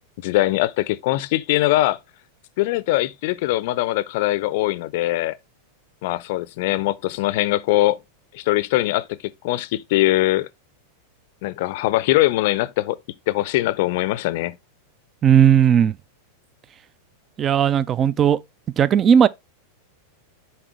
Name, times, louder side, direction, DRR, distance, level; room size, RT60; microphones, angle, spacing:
voice 1, 0.2-2.0 2.6-5.4 6.0-8.0 8.3-10.5 11.4-13.0 13.3-14.6, left 17 dB, 50° left, 0.5 m, -21 dB
voice 2, 15.2-15.9 17.4-18.4 18.8-19.3, right 8 dB, 25° right, 0.4 m, -16 dB
7.3 x 4.5 x 3.3 m
figure-of-eight pair, 90°, 0 cm